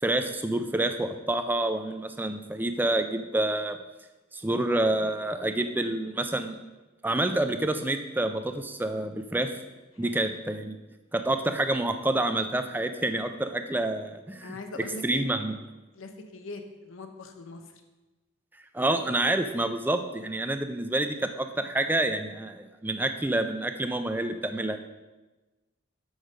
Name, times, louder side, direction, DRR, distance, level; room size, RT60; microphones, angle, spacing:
voice 1, 0.0-3.8 4.3-6.6 7.0-9.5 10.0-10.8 11.1-14.5 15.0-15.5 18.7-24.8, right 1 dB, 10° right, 8 dB, 0.4 m, -28 dB
voice 2, 9.9-10.3 14.4-15.3 15.9-17.6, left 2 dB, 75° left, 6 dB, 0.7 m, -41 dB
6.3 x 5.1 x 6.2 m, 1.1 s
head